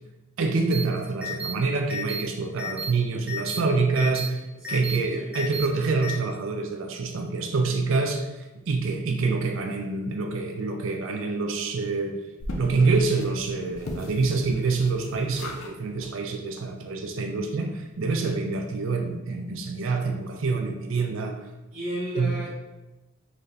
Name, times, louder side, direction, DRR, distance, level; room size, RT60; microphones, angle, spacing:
voice 1, 0.4-12.2 12.5-21.4 22.2-22.3, right 3 dB, 70° right, 4 dB, 0.4 m, -26 dB
sound 1, 0.7-0.8 1.2-1.5 1.9-2.2 2.6-2.9 3.3-3.6 4.0-4.3 4.6-5.0 5.3-5.7 6.0-6.2, left 1 dB, 5° right, 0.4 m, -32 dB
voice 2, 4.5-5.3 21.7-22.5, equal, 30° right, -11 dB, 1.2 m, -34 dB
sound 2, 12.4-15.7 16.0-16.1 16.6-16.7 16.9-17.0, left 1 dB, 75° left, 0.5 m, -38 dB
3.9 x 3.3 x 2.7 m, 1.0 s
head